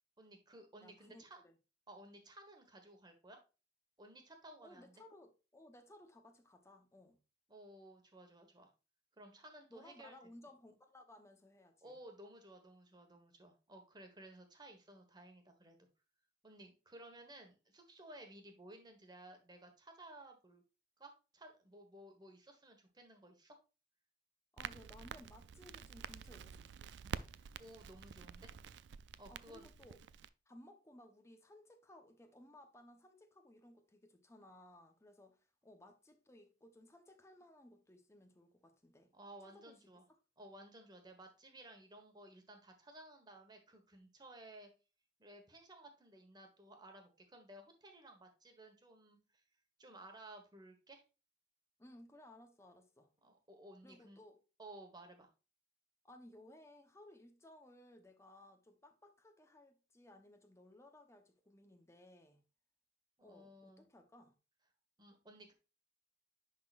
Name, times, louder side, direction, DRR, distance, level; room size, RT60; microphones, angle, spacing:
voice 1, 0.2-1.4 1.9-3.4 4.0-4.9 7.5-8.7 9.2-10.2 11.8-15.9 16.4-20.6 21.0-23.5 27.6-28.5 29.2-29.7 39.1-40.0 40.4-44.7 45.2-49.4 49.8-51.0 53.2-54.2 54.6-55.3 63.2-63.8 65.0-65.5, right 1 dB, 25° right, 1.4 m, -56 dB
voice 2, 0.8-1.5 4.6-7.2 9.7-12.0 24.5-27.1 29.3-30.0 30.5-39.1 39.4-39.8 51.8-53.1 53.8-54.4 56.0-62.4 63.2-64.3, left 1 dB, 15° left, 0.9 m, -60 dB
Crackle, 24.6-30.3, right 7 dB, 70° right, 0.3 m, -49 dB
10.5 x 3.9 x 2.5 m
head